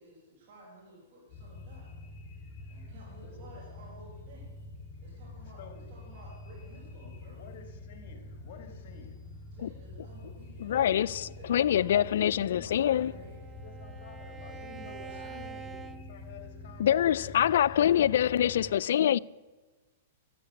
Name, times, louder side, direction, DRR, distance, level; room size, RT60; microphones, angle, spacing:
voice 1, 0.0-1.9 2.7-4.5 5.0-7.4 9.5-13.4 14.7-15.9, right 1 dB, 55° right, 5.7 m, -53 dB
sound 1, 1.3-18.7, left 2 dB, 35° left, 5.5 m, -46 dB
voice 2, 5.6-5.9 7.0-9.3 11.9-13.2 13.6-18.4, left 6 dB, 55° left, 2.6 m, -51 dB
voice 3, 10.6-13.1 16.8-19.2, left 10 dB, 70° left, 0.3 m, -25 dB
Bowed string instrument, 12.5-16.9, right 7 dB, 15° right, 0.7 m, -47 dB
13.5 x 6.6 x 9.7 m
hypercardioid pair, 140°, 0 cm